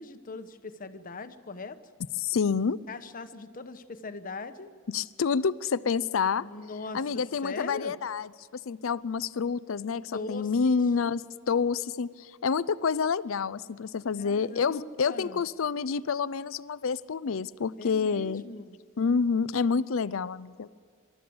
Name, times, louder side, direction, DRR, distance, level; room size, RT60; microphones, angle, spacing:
voice 1, 0.0-1.8 2.9-4.7 6.4-7.0 7.4-7.9 10.1-10.8 14.2-15.4 17.8-18.8, left 3 dB, 40° left, 9 dB, 1.0 m, -40 dB
voice 2, 2.2-2.8 4.9-6.5 6.9-11.2 11.5-18.4 19.0-20.7, left 5 dB, 70° left, 17 dB, 0.5 m, -28 dB
25.5 x 13.0 x 7.9 m, 2.1 s
head